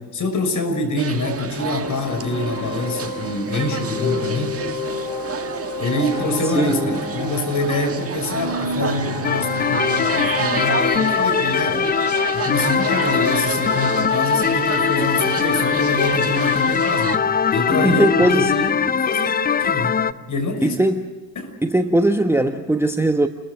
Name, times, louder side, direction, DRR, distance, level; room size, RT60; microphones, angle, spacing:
voice 1, 0.0-4.7 5.8-11.8 12.3-17.2 17.5-20.8 21.3-21.6, left 2 dB, 40° left, 6 dB, 6.2 m, -25 dB
sound 1, 1.0-17.2, right 6 dB, 30° right, 1.7 m, -30 dB
sound 2, 1.7-13.0, left 3 dB, 85° left, 3.5 m, -31 dB
voice 2, 6.5-7.0 11.7-11.9 17.8-18.5 20.6-21.0 21.6-23.3, right 1 dB, 5° right, 7 dB, 1.1 m, -19 dB
sound 3, 9.2-20.1, left 7 dB, 20° left, 0.7 m, -21 dB
29.5 x 22.0 x 6.4 m, 1.2 s
figure-of-eight pair, 60°, 48 cm